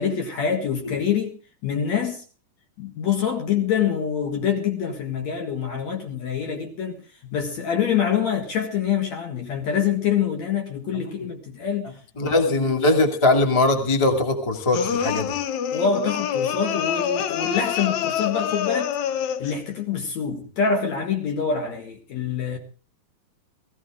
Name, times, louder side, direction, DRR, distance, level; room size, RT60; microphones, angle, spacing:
voice 1, 0.0-2.2 2.8-11.9 12.2-12.7 15.7-18.9 19.4-22.6, left 7 dB, 55° left, 2.7 m, -25 dB
voice 2, 12.2-15.3, left 2 dB, 15° left, 1.2 m, -20 dB
sound 1, 14.7-19.6, left 9 dB, 75° left, 1.7 m, -26 dB
19.0 x 15.5 x 3.6 m
omnidirectional pair, 4.5 m